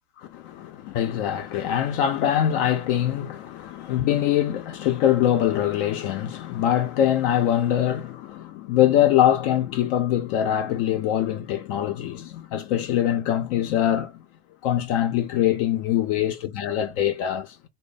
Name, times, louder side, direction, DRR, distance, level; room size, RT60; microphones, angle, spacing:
voice 1, 0.3-14.2 14.6-17.7, left 11 dB, 50° left, 0.6 m, -23 dB
3.2 x 2.1 x 3.7 m
hypercardioid pair, 100°, 35 cm